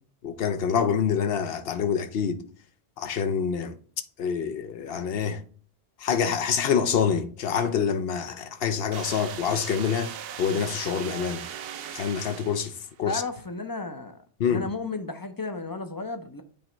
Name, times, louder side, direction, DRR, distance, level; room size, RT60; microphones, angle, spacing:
voice 1, 0.2-2.4 3.0-3.8 4.2-5.4 6.0-11.5 11.9-13.2 14.4-14.6, left 7 dB, 65° left, 0.8 m, -26 dB
sound 1, 8.9-12.9, right 9 dB, 70° right, 0.7 m, -38 dB
voice 2, 13.0-14.2 14.5-16.4, left 3 dB, 30° left, 0.5 m, -33 dB
8.5 x 3.0 x 4.4 m
omnidirectional pair, 1.1 m